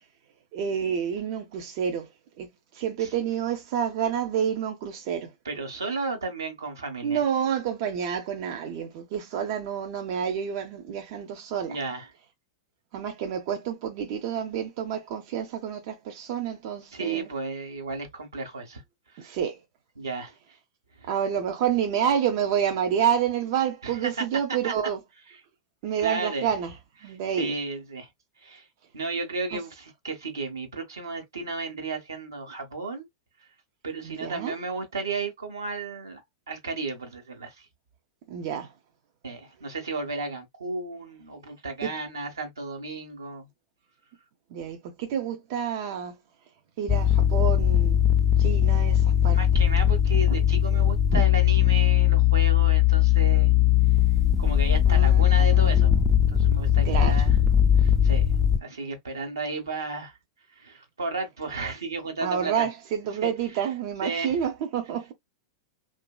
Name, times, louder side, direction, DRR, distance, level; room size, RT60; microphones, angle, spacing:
voice 1, 0.5-2.1 2.4-5.3 7.0-11.8 12.9-17.3 19.2-19.6 21.1-25.0 25.8-26.7 27.0-27.5 29.5-29.6 34.0-34.5 38.3-38.7 41.8-41.9 44.5-46.2 46.8-48.0 48.4-49.4 54.9-56.0 56.8-57.2 62.2-65.1, right 8 dB, 50° right, 0.6 m, -29 dB
voice 2, 5.4-7.2 11.7-12.1 16.9-18.8 19.1-19.3 20.0-20.4 21.0-21.1 23.8-24.2 24.6-24.7 26.0-26.5 27.0-28.1 28.4-28.7 28.9-33.1 33.8-36.2 36.5-37.6 39.2-43.5 49.3-53.5 54.4-57.4 57.8-58.3 58.6-60.2 60.5-62.7 63.2-63.3 64.0-64.4, right 3 dB, 80° right, 1.1 m, -33 dB
sound 1, 46.9-58.6, left 10 dB, 10° left, 0.5 m, -20 dB
2.9 x 2.5 x 2.2 m
figure-of-eight pair, 100°, 2 cm